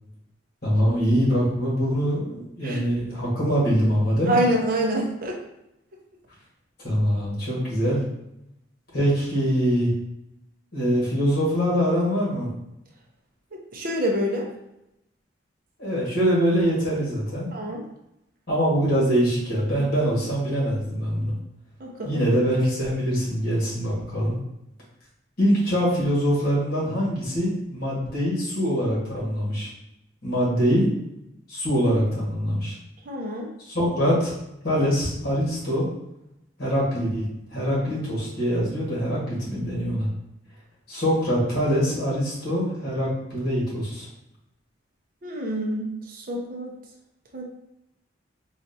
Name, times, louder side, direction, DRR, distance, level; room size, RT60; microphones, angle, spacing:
voice 1, 0.6-4.4 6.8-8.0 8.9-9.9 10.7-12.5 15.8-17.5 18.5-21.3 22.0-24.4 25.4-29.7 30.2-30.8 31.5-32.7 33.7-34.3 34.6-35.9 36.6-37.2 37.5-40.1 40.9-44.1, equal, 50° left, -6 dB, 1.5 m, -23 dB
voice 2, 4.3-5.4 13.5-14.5 17.5-17.8 21.8-22.2 30.6-30.8 33.1-33.5 45.2-46.7 47.3-47.4, right 1 dB, 45° right, 0 dB, 0.6 m, -27 dB
4.1 x 2.4 x 2.7 m, 0.84 s
head